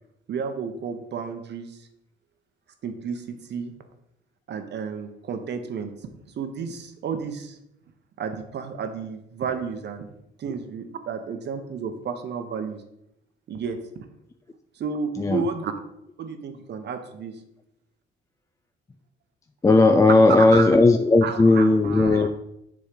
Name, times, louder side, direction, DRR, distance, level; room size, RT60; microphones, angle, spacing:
voice 1, 0.3-1.8 2.8-3.7 4.5-5.9 6.4-7.6 8.2-10.1 10.4-12.8 13.5-14.1 14.7-15.7 16.2-17.4 20.3-20.7 21.2-22.3, right 6 dB, 60° right, 7 dB, 0.9 m, -31 dB
voice 2, 19.6-22.3, left 3 dB, 15° left, 7 dB, 0.3 m, -16 dB
7.0 x 3.1 x 5.1 m, 0.81 s
cardioid pair, 90°, 20 cm